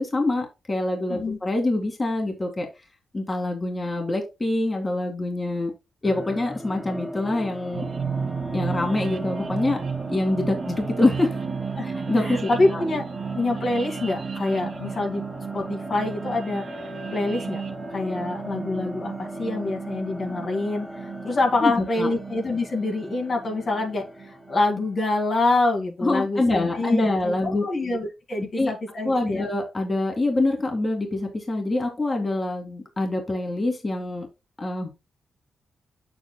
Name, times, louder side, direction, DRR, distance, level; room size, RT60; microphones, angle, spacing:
voice 1, 0.0-2.7 3.1-5.7 6.0-7.9 8.5-9.8 10.1-11.4 11.8-12.8 21.6-22.1 26.0-27.6 28.6-28.7 29.0-34.3 34.6-34.9, left 2 dB, 25° left, 2 dB, 2.2 m, -25 dB
sound 1, 6.0-25.0, equal, 5° left, 1.2 m, -39 dB
sound 2, 7.7-24.9, right 6 dB, 60° right, 1.3 m, -34 dB
voice 2, 12.2-13.0 13.3-15.2 15.5-16.6 17.1-17.6 17.9-29.4, left 2 dB, 50° left, 1 dB, 2.2 m, -26 dB
7.8 x 7.5 x 2.2 m, 0.26 s
cardioid pair, 90°, 0 cm